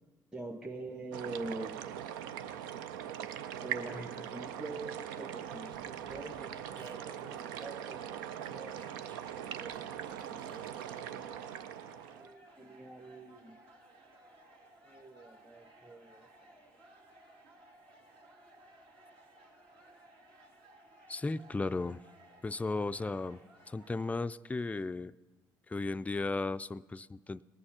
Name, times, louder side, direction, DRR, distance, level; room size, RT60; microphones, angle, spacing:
voice 1, 0.3-1.8 3.6-8.7 9.4-9.8 10.3-11.4 12.1-13.6 14.8-16.6, right 2 dB, 5° right, 3 dB, 0.9 m, -45 dB
sound 1, 1.1-12.3, right 10 dB, 85° right, 0.4 m, -41 dB
sound 2, 4.8-24.1, right 1 dB, 65° right, 2.2 m, -59 dB
Fart, 5.5-11.0, right 3 dB, 45° right, 1.3 m, -59 dB
voice 2, 21.1-22.0 22.4-23.4 23.7-25.1 25.7-27.4, left 3 dB, 15° left, 13 dB, 0.3 m, -35 dB
19.0 x 6.5 x 5.7 m, 1.3 s
hypercardioid pair, 50°, 11 cm